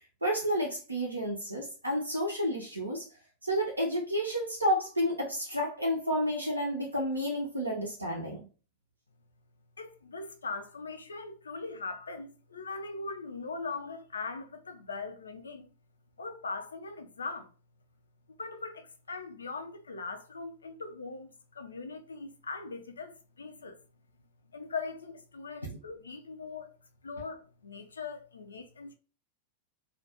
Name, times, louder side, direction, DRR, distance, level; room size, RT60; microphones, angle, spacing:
voice 1, 0.2-3.0 3.4-8.5 25.6-25.8, equal, 85° right, 0.4 m, -31 dB
voice 2, 9.8-15.7 16.2-17.5 18.4-23.8 24.5-26.7 27.0-28.9, left 4 dB, 75° left, 0.3 m, -40 dB
2.2 x 2.1 x 2.8 m
figure-of-eight pair, 90°, 0 cm